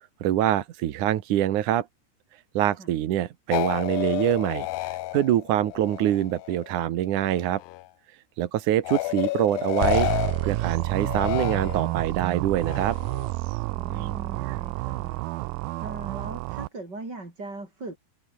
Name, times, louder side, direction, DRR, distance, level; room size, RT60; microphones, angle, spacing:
voice 1, 0.2-1.9 2.6-7.6 8.4-10.1 10.4-13.0, right 12 dB, 60° right, 2.3 m, -25 dB
sound 1, 3.5-6.7 7.0-7.9 8.8-12.1 12.6-13.3, left 18 dB, 85° left, 2.9 m, -31 dB
sound 2, 9.8-16.7, right 22 dB, 90° right, 2.1 m, -29 dB
voice 2, 13.7-15.2 15.8-18.0, right 2 dB, 25° right, 6.3 m, -39 dB
omnidirectional pair, 4.7 m